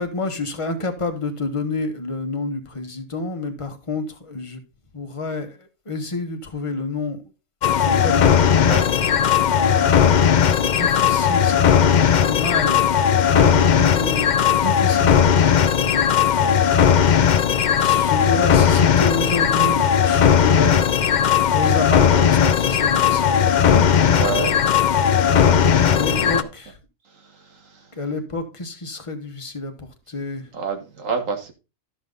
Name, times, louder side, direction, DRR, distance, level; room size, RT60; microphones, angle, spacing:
voice 1, 0.0-4.6 4.9-7.2 7.7-8.3 9.5-12.9 13.2-16.1 17.8-20.9 21.5-23.9 25.9-26.8 27.9-30.5, left 3 dB, 25° left, 1.3 m, -29 dB
sound 1, 7.6-26.4, left 8 dB, 60° left, 0.5 m, -17 dB
voice 2, 24.0-24.6 25.3-26.5 27.2-27.9 30.5-31.5, right 4 dB, 65° right, 1.9 m, -29 dB
12.5 x 5.6 x 3.9 m
omnidirectional pair, 1.4 m